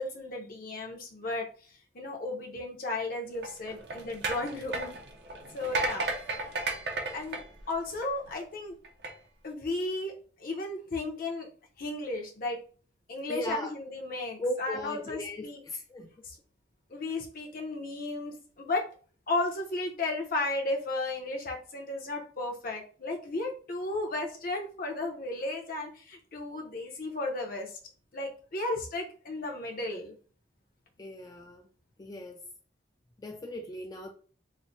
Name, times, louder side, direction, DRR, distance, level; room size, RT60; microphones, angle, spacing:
voice 1, 0.0-1.5 1.9-5.0 5.5-6.1 7.1-7.4 7.7-8.7 9.4-10.1 10.4-11.5 11.8-12.6 13.1-15.6 16.2-16.3 16.9-18.8 19.3-27.8 28.1-30.1, left 2 dB, 55° left, 0.8 m, -34 dB
sound 1, 3.3-8.3 8.8-9.1, right 2 dB, 65° right, 0.6 m, -34 dB
voice 2, 13.3-13.7 14.4-16.1 31.0-31.7 32.0-32.4 33.2-34.1, equal, 20° left, 0.4 m, -37 dB
3.1 x 2.1 x 4.0 m
head